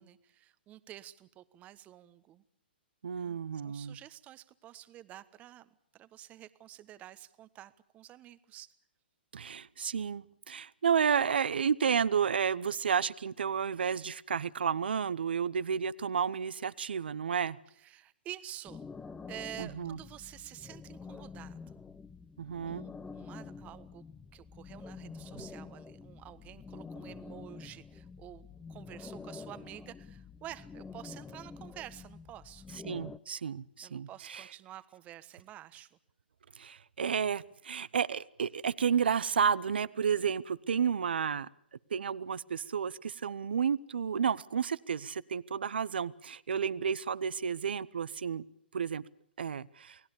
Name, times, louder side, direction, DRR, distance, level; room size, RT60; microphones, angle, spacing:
voice 1, 0.0-2.4 3.2-8.7 17.7-18.8 19.2-21.8 22.6-24.0 24.3-32.7 33.8-36.0, right 13 dB, 25° right, 15 dB, 1.2 m, -49 dB
voice 2, 3.0-4.0 9.3-17.6 19.6-20.0 22.4-22.8 32.8-34.5 36.6-41.5 41.9-48.4 48.7-49.0 49.4-50.0, right 7 dB, 70° right, 18 dB, 0.9 m, -31 dB
sound 1, 18.7-33.2, left 5 dB, 10° left, 1.0 m, -47 dB
28.5 x 18.5 x 7.0 m, 0.69 s
figure-of-eight pair, 120°, 6 cm